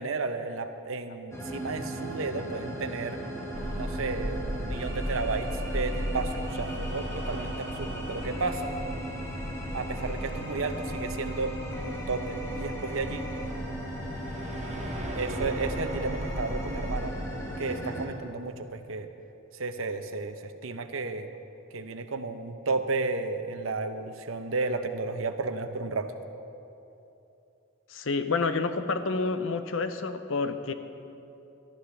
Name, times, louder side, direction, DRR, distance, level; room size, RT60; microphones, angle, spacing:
voice 1, 0.0-3.2 3.7-8.7 9.7-11.6 11.9-13.2 15.2-17.1 17.6-19.1 19.5-21.3 21.7-26.1, right 3 dB, 85° right, 8 dB, 0.8 m, -33 dB
sound 1, 1.3-18.1, equal, 15° left, 1.5 m, -37 dB
sound 2, 3.5-17.0, equal, 30° right, 1.0 m, -37 dB
voice 2, 27.9-30.7, left 4 dB, 75° left, 9 dB, 0.7 m, -29 dB
18.5 x 13.0 x 3.3 m, 2.9 s
head